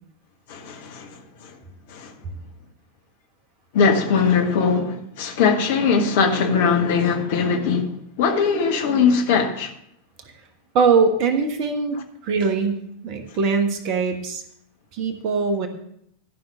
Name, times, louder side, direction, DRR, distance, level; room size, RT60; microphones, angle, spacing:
voice 1, 0.5-1.1 1.4-1.5 1.9-2.1 3.7-7.9 8.2-9.7, left 5 dB, 50° left, 1.5 m, -20 dB
voice 2, 10.7-12.8 13.0-14.4 14.9-15.7, right 5 dB, 40° right, 1.4 m, -21 dB
13.0 x 5.6 x 6.7 m
figure-of-eight pair, 90°, 0 cm